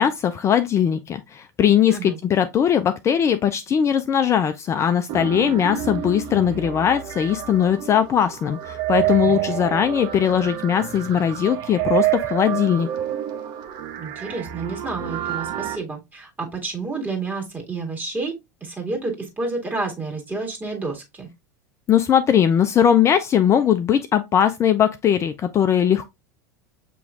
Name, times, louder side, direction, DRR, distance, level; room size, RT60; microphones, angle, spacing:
voice 1, 0.0-12.9 21.9-26.1, left 9 dB, 30° left, 0.4 m, -20 dB
sound 1, 5.1-15.8, right 13 dB, 50° right, 0.7 m, -28 dB
voice 2, 9.2-9.5 14.0-18.3 18.6-21.3, right 3 dB, 15° right, 2.0 m, -30 dB
6.9 x 3.0 x 2.4 m
hypercardioid pair, 85°, 10 cm